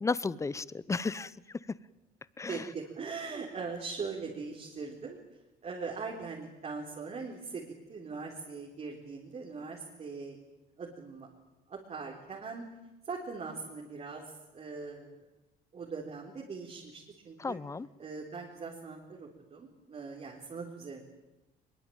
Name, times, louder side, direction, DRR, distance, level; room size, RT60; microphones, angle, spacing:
voice 1, 0.0-1.3 2.4-2.6 17.4-17.9, left 4 dB, 15° left, 20 dB, 0.8 m, -33 dB
voice 2, 2.5-5.2 5.6-10.4 10.8-11.3 11.7-12.6 13.1-14.2 14.5-15.2 15.7-17.6 18.0-21.0, right 4 dB, 40° right, -1 dB, 4.3 m, -41 dB
22.0 x 22.0 x 9.0 m, 1.0 s
cardioid pair, 110°, 17 cm